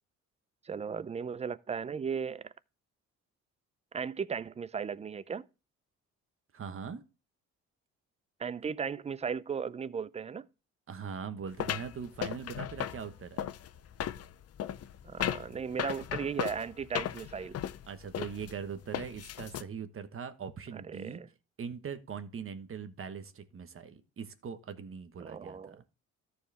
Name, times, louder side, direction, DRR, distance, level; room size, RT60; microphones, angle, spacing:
voice 1, 0.6-2.5 3.9-5.4 8.4-10.5 15.0-17.6 20.7-21.3 25.2-25.8, right 6 dB, 20° right, 0.4 m, -36 dB
voice 2, 6.5-7.0 10.9-13.5 17.9-21.2 21.6-25.8, right 6 dB, 45° right, 1.2 m, -41 dB
sound 1, 11.6-19.6, left 10 dB, 55° left, 0.6 m, -36 dB
13.5 x 4.8 x 3.3 m
cardioid pair, 90°, 30 cm